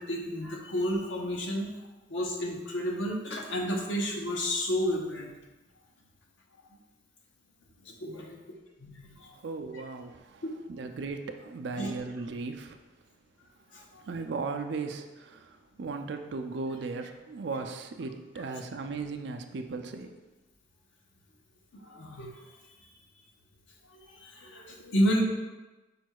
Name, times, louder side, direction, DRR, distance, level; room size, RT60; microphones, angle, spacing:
voice 1, 0.0-1.7 2.1-5.3 7.8-8.4 8.8-9.3 10.4-10.5 11.8-11.9 13.7-14.0 21.8-22.3 24.2-25.2, equal, 90° left, 0 dB, 0.8 m, -31 dB
voice 2, 9.4-10.4 10.7-12.8 14.1-15.5 15.8-20.1, right 4 dB, 70° right, 6 dB, 0.4 m, -36 dB
5.1 x 2.3 x 4.5 m, 1.1 s
head